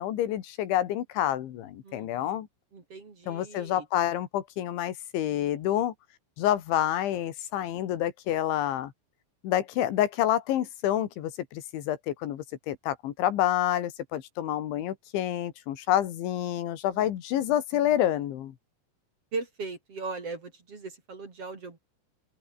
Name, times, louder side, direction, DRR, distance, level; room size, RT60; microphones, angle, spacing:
voice 1, 0.0-2.5 3.3-5.9 6.4-8.9 9.4-18.5, left 12 dB, 90° left, 4.4 m, -28 dB
voice 2, 1.8-2.4 2.7-3.9 16.9-17.1 19.3-21.8, right 3 dB, 35° right, 3.8 m, -39 dB
open air
omnidirectional pair, 5.2 m